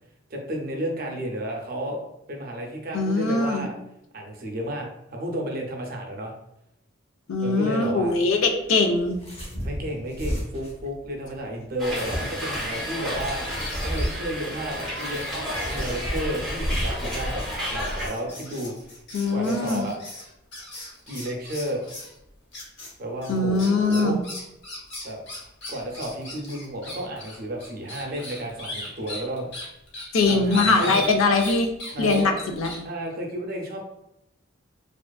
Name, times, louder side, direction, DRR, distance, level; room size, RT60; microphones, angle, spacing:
voice 1, 0.3-2.0 2.3-3.7 4.1-6.3 7.4-8.1 9.6-13.4 13.8-18.7 19.3-20.0 21.1-21.8 23.0-24.2 25.0-25.2 25.7-29.5 30.3-31.0 31.9-32.3 32.8-33.8, equal, 45° right, 1 dB, 0.5 m, -32 dB
voice 2, 2.9-3.7 7.3-9.2 19.1-19.9 23.3-24.2 30.1-31.7 32.0-32.3 32.6-32.7, left 3 dB, 80° left, 4 dB, 0.4 m, -22 dB
sound 1, 8.0-16.9, equal, 30° left, 0.8 m, -37 dB
Hiss, 11.8-18.1, equal, ahead, 0.6 m, -30 dB
sound 2, 13.2-14.3 14.8-22.1 22.5-22.9 23.2-31.5 31.8-32.8, left 1 dB, 60° left, 0.8 m, -38 dB
2.4 x 2.4 x 2.2 m, 0.84 s
head